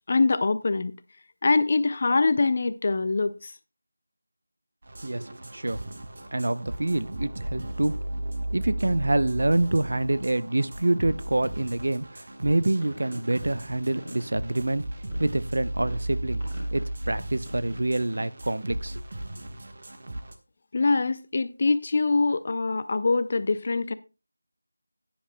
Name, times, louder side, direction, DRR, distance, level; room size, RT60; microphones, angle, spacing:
voice 1, 0.1-0.9 1.4-3.5 20.7-23.9, left 3 dB, 25° left, 0.4 m, -24 dB
sound 1, 4.8-20.3, right 1 dB, 35° right, 1.2 m, -35 dB
voice 2, 5.0-5.8 6.3-8.0 8.5-14.9 15.2-16.4 16.7-19.0, right 2 dB, 50° right, 0.6 m, -26 dB
sound 2, 12.8-18.4, equal, 15° right, 5.1 m, -46 dB
15.0 x 10.0 x 2.2 m
figure-of-eight pair, 180°, 0 cm